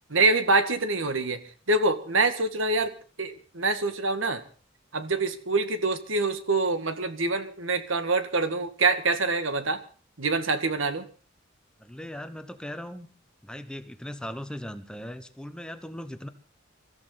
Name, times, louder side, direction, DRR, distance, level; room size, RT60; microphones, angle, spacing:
voice 1, 0.1-1.4 1.7-2.9 3.2-4.4 4.9-9.8 10.2-11.0, right 3 dB, 80° right, 9 dB, 1.8 m, -25 dB
voice 2, 11.8-13.1 13.4-16.3, equal, 5° left, 9 dB, 1.0 m, -38 dB
25.5 x 14.0 x 4.0 m, 0.39 s
head